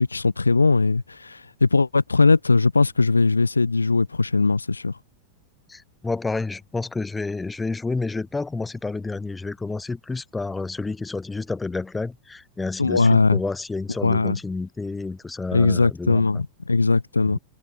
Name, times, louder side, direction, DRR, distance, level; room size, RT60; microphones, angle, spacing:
voice 1, 0.0-4.9 12.8-13.4 14.0-14.4 15.5-17.4, left 3 dB, 80° left, 2.2 m, -20 dB
voice 2, 5.7-16.2 17.2-17.4, left 3 dB, 10° left, 6.7 m, -30 dB
figure-of-eight pair, 90°, 0 cm